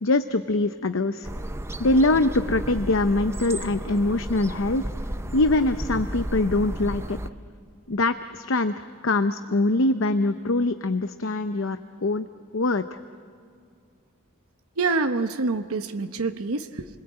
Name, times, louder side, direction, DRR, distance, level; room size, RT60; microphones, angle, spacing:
voice 1, 0.0-1.3 1.8-4.8 5.3-7.2 7.9-12.3 12.5-13.0, left 2 dB, 65° left, 10 dB, 0.7 m, -23 dB
sound 1, 1.2-7.3, right 1 dB, 10° right, 0.6 m, -33 dB
voice 2, 14.8-16.9, right 3 dB, 85° right, 8 dB, 1.0 m, -26 dB
29.0 x 21.5 x 8.8 m, 2.2 s
head